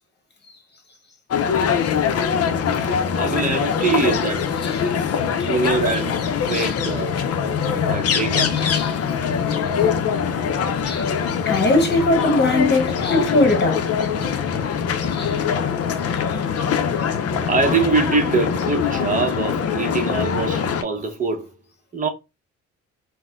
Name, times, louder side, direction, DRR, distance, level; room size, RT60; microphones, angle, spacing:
sound 1, 1.3-20.8, left 7 dB, 55° left, 0.6 m, -23 dB
voice 1, 3.1-4.5 5.5-6.2 6.5-7.2 7.7-8.6 17.4-21.5 21.9-22.1, right 4 dB, 25° right, 0.9 m, -23 dB
voice 2, 8.5-9.0 10.8-11.1 11.4-13.9 15.1-15.4, left 2 dB, 35° left, 1.1 m, -21 dB
4.0 x 2.1 x 2.4 m
cardioid pair, 90°, 30 cm